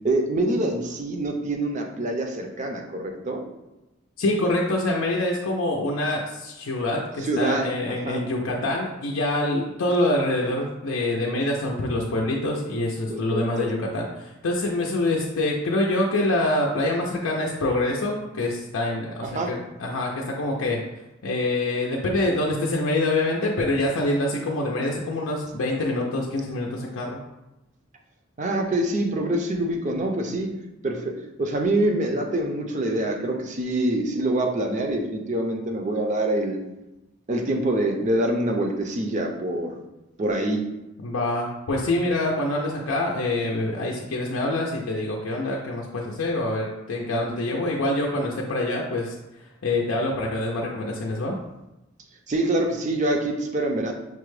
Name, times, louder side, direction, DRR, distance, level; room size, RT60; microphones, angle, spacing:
voice 1, 0.0-3.4 7.2-8.2 13.1-13.7 19.2-19.5 28.4-30.5 30.8-31.1 31.4-36.6 37.3-39.8 40.2-40.6 52.3-53.9, right 1 dB, 35° right, 3 dB, 0.5 m, -25 dB
voice 2, 4.2-20.8 21.2-27.2 41.0-51.4, left 2 dB, 90° left, -2 dB, 0.5 m, -25 dB
5.8 x 2.1 x 3.1 m, 0.96 s
head